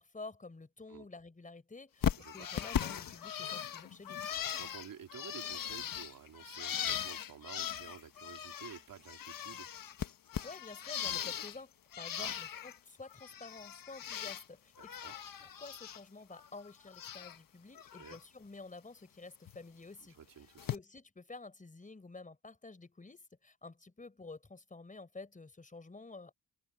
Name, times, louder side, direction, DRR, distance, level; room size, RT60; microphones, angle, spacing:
voice 1, 0.0-2.1 2.3-4.2 10.4-15.1 15.4-20.1 20.7-26.3, left 3 dB, 20° left, 4.6 m, -50 dB
Bird, 2.0-8.8 9.1-11.6 11.9-12.8 13.1-14.4 14.8-16.0 16.3-17.4 17.8-18.2 19.5-19.6 20.6-20.8, left 9 dB, 65° left, 1.4 m, -39 dB
voice 2, 2.2-2.5 4.6-9.7 12.1-12.4 14.8-15.2 18.0-18.2 20.1-20.7, right 8 dB, 65° right, 3.3 m, -51 dB
open air
cardioid pair, 100°, 37 cm